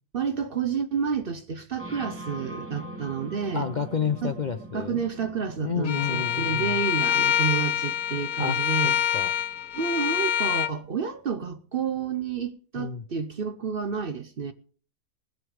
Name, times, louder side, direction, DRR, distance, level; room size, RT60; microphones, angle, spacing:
voice 1, 0.1-3.7 4.2-4.4 4.7-9.0 9.7-14.5, right 6 dB, 50° right, 0.8 m, -30 dB
sound 1, 1.8-11.4, right 1 dB, 10° right, 2.2 m, -44 dB
voice 2, 3.5-5.0 5.6-6.8 8.4-9.3 12.8-13.0, left 6 dB, 45° left, 0.6 m, -30 dB
Bowed string instrument, 5.8-10.7, left 11 dB, 80° left, 1.3 m, -26 dB
19.0 x 7.8 x 5.0 m
omnidirectional pair, 1.5 m